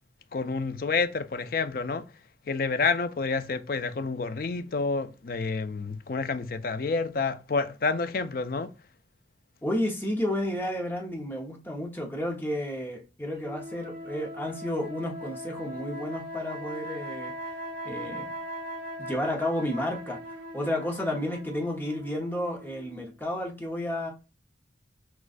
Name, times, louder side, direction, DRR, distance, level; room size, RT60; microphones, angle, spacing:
voice 1, 0.3-2.1 2.5-8.7, left 4 dB, 50° left, 0.4 m, -29 dB
voice 2, 9.6-17.3 17.8-18.3 19.0-20.2 20.5-24.1, left 1 dB, 10° left, 0.9 m, -31 dB
sound 1, 13.4-23.1, equal, 70° right, 2.4 m, -40 dB
6.2 x 2.4 x 2.5 m
head